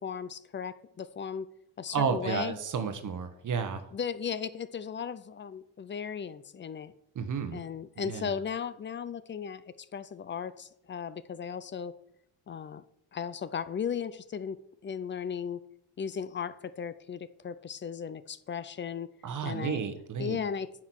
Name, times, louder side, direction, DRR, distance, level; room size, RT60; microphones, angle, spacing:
voice 1, 0.0-1.5 1.8-2.6 3.9-6.9 7.5-11.9 12.5-12.8 13.1-14.6 14.8-15.6 16.0-19.1 19.4-19.8 20.2-20.7, left 7 dB, 25° left, 16 dB, 0.4 m, -36 dB
voice 2, 1.9-3.8 7.1-7.6 8.0-8.3 19.2-20.4, right 6 dB, 45° right, 8 dB, 1.1 m, -32 dB
9.5 x 6.1 x 6.2 m, 0.77 s
cardioid pair, 130°, 44 cm